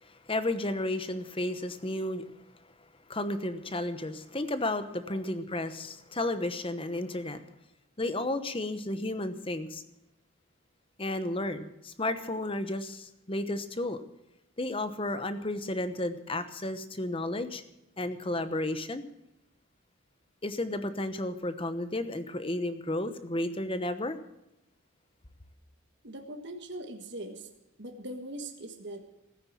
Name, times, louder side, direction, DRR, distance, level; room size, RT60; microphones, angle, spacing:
voice 1, 0.0-2.2 3.1-7.4 8.0-9.8 11.0-14.0 14.6-17.6 18.0-19.0 20.4-24.2, left 1 dB, 25° left, 11 dB, 1.0 m, -32 dB
voice 2, 26.0-27.5 27.8-29.0, right 1 dB, 50° right, 4 dB, 1.6 m, -41 dB
17.0 x 9.7 x 7.4 m, 0.90 s
head